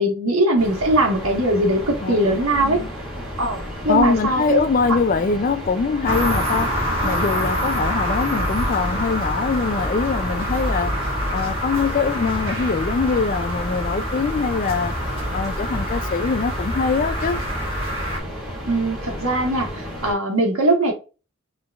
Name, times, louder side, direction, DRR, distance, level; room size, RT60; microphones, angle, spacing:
voice 1, 0.0-2.8 3.4-4.6 4.9-5.0 18.7-20.9, right 1 dB, 80° right, 1.5 m, -20 dB
sound 1, 0.6-20.1, equal, ahead, 2.3 m, -33 dB
voice 2, 2.0-2.3 2.6-2.9 3.9-6.7 7.0-14.9 15.3-17.4, left 4 dB, 40° left, 0.3 m, -23 dB
sound 2, 6.0-18.2, equal, 25° right, 1.5 m, -26 dB
5.9 x 3.3 x 2.4 m
head